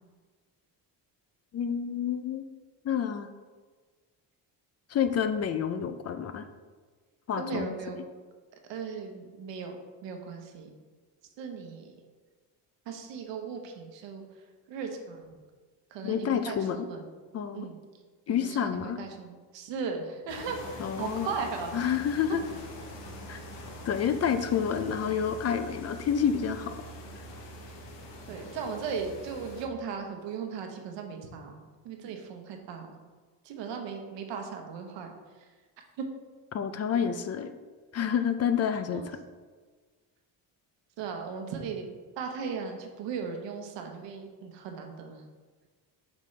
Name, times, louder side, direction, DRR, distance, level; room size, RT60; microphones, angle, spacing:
voice 1, 1.5-2.4 2.8-3.3 4.9-6.5 7.3-7.7 16.0-16.9 17.3-17.7 18.3-19.0 20.8-21.3 21.7-22.4 23.3-23.4 23.8-26.8 27.2-27.3 36.5-37.5 37.9-39.0, left 8 dB, 40° left, 9 dB, 0.4 m, -29 dB
voice 2, 7.4-8.0 8.7-9.8 10.0-10.7 11.4-12.0 12.8-14.2 14.7-15.4 15.9-17.1 17.5-17.8 18.3-21.7 28.3-31.6 31.8-33.0 33.4-35.1 35.4-35.5 36.0-36.1 38.9-39.1 41.0-41.9 42.2-45.2, right 5 dB, 85° right, 3 dB, 1.1 m, -37 dB
sound 1, 20.3-29.7, equal, 75° left, 1.1 m, -44 dB
7.5 x 5.2 x 3.3 m, 1.4 s
cardioid pair, 120°, 43 cm